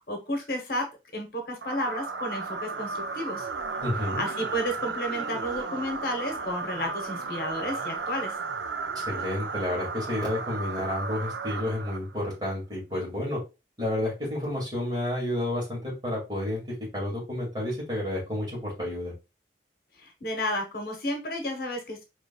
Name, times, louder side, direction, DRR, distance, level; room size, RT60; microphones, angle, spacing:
voice 1, 0.1-0.9 1.1-3.5 4.2-8.3 20.0-22.0, equal, 55° left, 3 dB, 1.0 m, -32 dB
sound 1, 1.6-12.3, right 4 dB, 85° right, 0.5 m, -34 dB
voice 2, 3.8-4.2 8.9-13.4 13.8-16.6 16.9-19.1, left 1 dB, 25° right, -5 dB, 2.3 m, -30 dB
5.1 x 3.1 x 2.3 m, 0.27 s
head